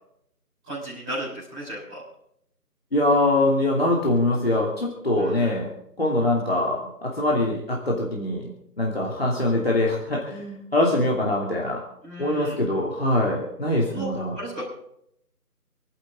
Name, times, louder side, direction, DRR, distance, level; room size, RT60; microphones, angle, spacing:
voice 1, 0.6-2.0 5.1-5.5 12.0-12.6 13.9-14.1 14.3-14.6, right 1 dB, 5° right, -15 dB, 3.9 m, -35 dB
voice 2, 2.9-8.5 8.8-11.8 12.2-14.3, left 1 dB, 40° left, -4 dB, 3.0 m, -23 dB
28.0 x 11.0 x 3.9 m, 0.74 s
figure-of-eight pair, 170°, 48 cm